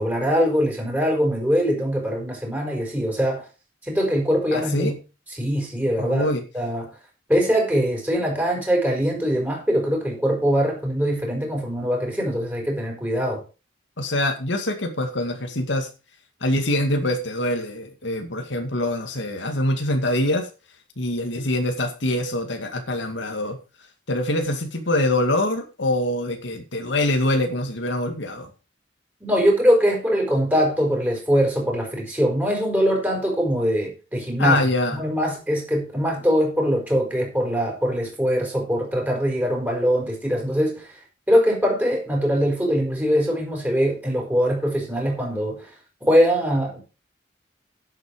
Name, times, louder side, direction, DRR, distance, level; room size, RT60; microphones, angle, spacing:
voice 1, 0.0-3.5 3.8-5.0 5.3-6.3 6.5-6.9 7.3-13.4 29.2-34.6 34.9-40.9 41.3-45.7 46.0-46.8, equal, 10° right, 5.2 m, -22 dB
voice 2, 4.5-4.9 6.0-6.4 14.0-15.9 16.4-20.5 21.0-23.6 24.1-28.5 34.4-35.0, left 1 dB, 80° left, 2.1 m, -24 dB
11.0 x 8.3 x 5.0 m
head